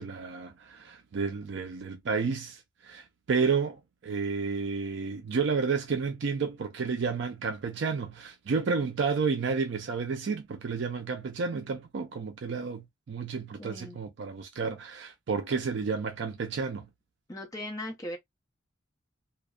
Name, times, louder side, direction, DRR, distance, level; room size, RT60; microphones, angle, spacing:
voice 1, 0.0-16.9, right 5 dB, 60° right, 0.4 m, -31 dB
voice 2, 13.6-14.0 17.3-18.2, left 1 dB, 15° left, 0.8 m, -38 dB
2.6 x 2.1 x 2.3 m
head